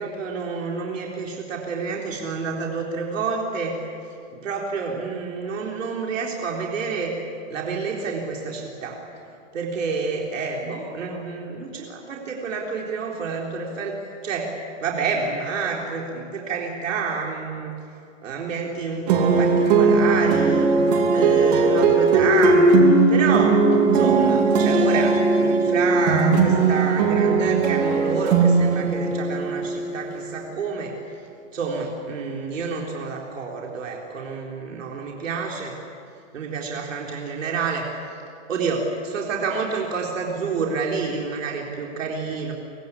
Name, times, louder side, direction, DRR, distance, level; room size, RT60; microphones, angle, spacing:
voice 1, 0.0-3.8 4.4-7.2 7.5-9.0 9.5-17.7 18.2-20.8 21.1-22.7 23.1-23.6 23.9-30.9 31.5-35.7 36.3-37.8 38.5-42.5, right 5 dB, 75° right, -1 dB, 4.1 m, -28 dB
sound 1, 19.1-30.2, right 4 dB, 30° right, 2.6 m, -18 dB
25.0 x 24.0 x 8.6 m, 2.6 s
hypercardioid pair, 175°, 39 cm